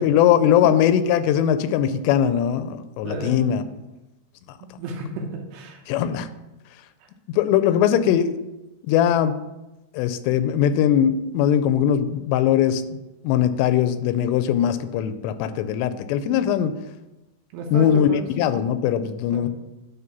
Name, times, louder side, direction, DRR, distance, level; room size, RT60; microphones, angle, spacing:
voice 1, 0.0-3.6 5.9-6.3 7.3-8.3 8.8-9.4 9.9-13.0 13.2-16.8 17.7-18.1 18.4-19.5, left 9 dB, 85° left, 12 dB, 2.7 m, -20 dB
voice 2, 3.0-3.5 4.6-5.8 7.6-7.7 17.5-18.3 19.3-19.5, right 2 dB, 75° right, 2 dB, 3.0 m, -32 dB
10.5 x 3.6 x 5.9 m, 1.0 s
omnidirectional pair, 4.9 m